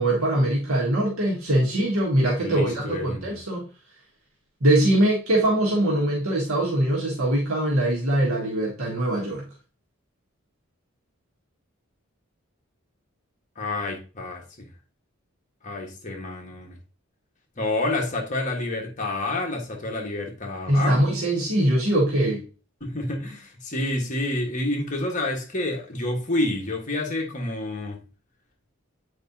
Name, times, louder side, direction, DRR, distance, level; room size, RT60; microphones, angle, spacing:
voice 1, 0.0-3.7 4.6-9.5 20.7-22.5, right 1 dB, 80° right, 1.7 m, -22 dB
voice 2, 2.4-3.4 13.6-14.7 15.6-16.8 17.6-21.0 22.8-28.0, left 2 dB, 35° left, 1.4 m, -29 dB
8.0 x 4.8 x 2.7 m
head